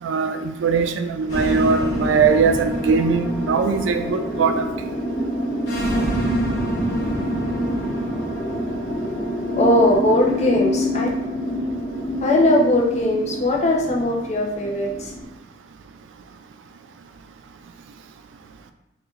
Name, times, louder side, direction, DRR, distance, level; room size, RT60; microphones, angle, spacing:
voice 1, 0.0-4.9, right 5 dB, 85° right, 7 dB, 0.3 m, -20 dB
sound 1, 1.3-15.2, equal, 70° left, 1.3 m, -26 dB
voice 2, 9.6-11.1 12.2-15.1, left 1 dB, 35° left, -2 dB, 0.7 m, -19 dB
4.5 x 2.5 x 3.2 m, 0.99 s
head